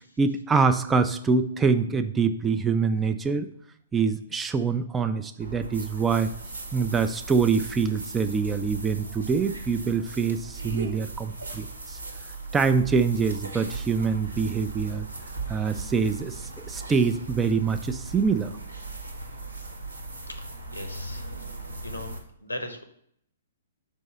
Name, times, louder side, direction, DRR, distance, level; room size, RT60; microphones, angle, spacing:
voice 1, 0.2-3.5 3.9-6.3 6.7-12.0 12.5-15.1 15.5-18.5, right 5 dB, 15° right, 9 dB, 0.4 m, -25 dB
sound 1, 5.4-22.2, right 3 dB, 85° right, 1.0 m, -38 dB
voice 2, 20.2-21.5 21.8-22.8, left 1 dB, 90° left, 7 dB, 0.9 m, -39 dB
5.4 x 3.6 x 5.5 m, 0.69 s
figure-of-eight pair, 120°, 0 cm